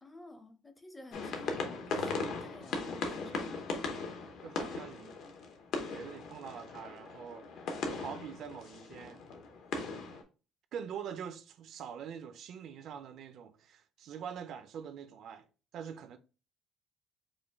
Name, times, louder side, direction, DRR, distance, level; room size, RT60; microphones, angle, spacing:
voice 1, 0.0-3.5, left 2 dB, 10° left, 0.5 m, -52 dB
sound 1, 1.1-10.2, left 3 dB, 60° left, 0.8 m, -38 dB
voice 2, 4.4-5.2 5.8-7.5 7.9-9.2 10.7-15.5 15.7-16.2, right 8 dB, 55° right, 0.4 m, -44 dB
4.9 x 2.2 x 3.3 m
cardioid pair, 145°, 0 cm